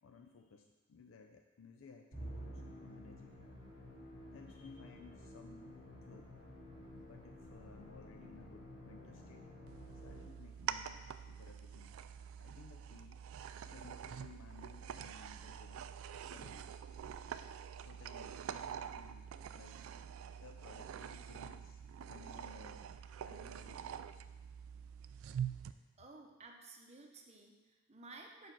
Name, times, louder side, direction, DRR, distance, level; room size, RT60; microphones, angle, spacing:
voice 1, 0.0-3.3 4.3-6.4 7.0-9.5 9.9-12.0 12.4-13.2 13.6-15.9 16.3-16.8 17.8-19.8 20.4-22.9 23.2-23.9, left 4 dB, 75° left, 4 dB, 0.4 m, -58 dB
Musical instrument, 2.1-10.6, equal, 45° left, 2.1 m, -51 dB
sound 1, 9.7-25.7, right 8 dB, 90° right, 0.3 m, -46 dB
voice 2, 26.0-28.5, right 3 dB, 30° right, 2 dB, 0.7 m, -55 dB
5.0 x 4.9 x 5.9 m, 1.3 s
head